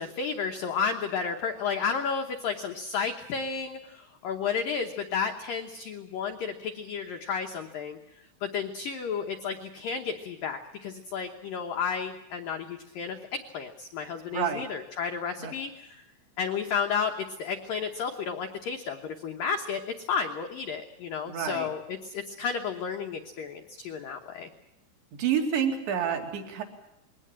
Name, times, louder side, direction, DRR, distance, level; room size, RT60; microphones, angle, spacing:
voice 1, 0.0-8.0 8.4-15.9 16.4-19.8 20.1-24.5, left 6 dB, 85° left, 3 dB, 2.0 m, -32 dB
voice 2, 14.3-14.6 15.4-15.6 21.3-21.7 25.2-26.6, right 8 dB, 65° right, 4 dB, 4.4 m, -28 dB
22.0 x 18.0 x 8.7 m, 0.84 s
omnidirectional pair, 5.7 m